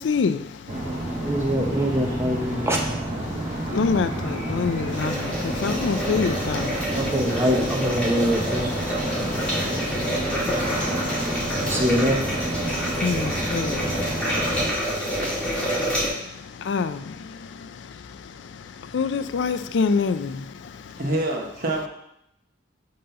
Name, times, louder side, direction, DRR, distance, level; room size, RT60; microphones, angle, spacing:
voice 1, 0.0-1.3 3.3-7.0 9.0-11.8 12.6-15.2 15.7-21.0, left 5 dB, 80° left, 0.4 m, -29 dB
sound 1, 0.7-14.7, right 1 dB, 40° right, 1.4 m, -30 dB
voice 2, 1.2-2.9 6.9-9.0 11.6-12.2, equal, 15° right, 0.9 m, -24 dB
sound 2, 4.9-16.1, equal, 5° left, 2.3 m, -28 dB
voice 3, 14.9-15.3 21.0-21.9, right 1 dB, 55° right, 1.1 m, -27 dB
5.4 x 3.8 x 5.7 m
head